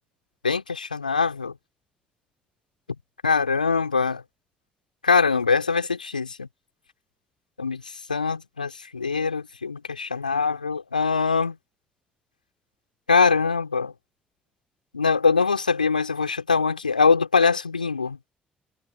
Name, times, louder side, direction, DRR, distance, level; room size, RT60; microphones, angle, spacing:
voice 1, 0.4-1.5 3.2-4.2 5.0-6.5 7.6-7.8 8.1-11.6 13.1-13.9 14.9-18.2, left 5 dB, 85° left, 3.8 m, -22 dB
figure-of-eight pair, 45°, 4 cm